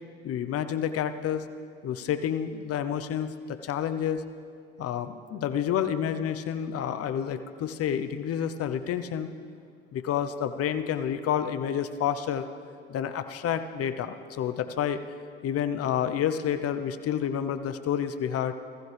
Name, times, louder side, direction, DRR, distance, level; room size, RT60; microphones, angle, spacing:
voice 1, 0.2-1.5 1.8-4.2 4.8-9.3 9.9-12.5 12.9-15.0 15.4-18.5, left 9 dB, 55° left, 10 dB, 0.9 m, -29 dB
19.5 x 15.0 x 3.5 m, 2.2 s
hypercardioid pair, 60°, 29 cm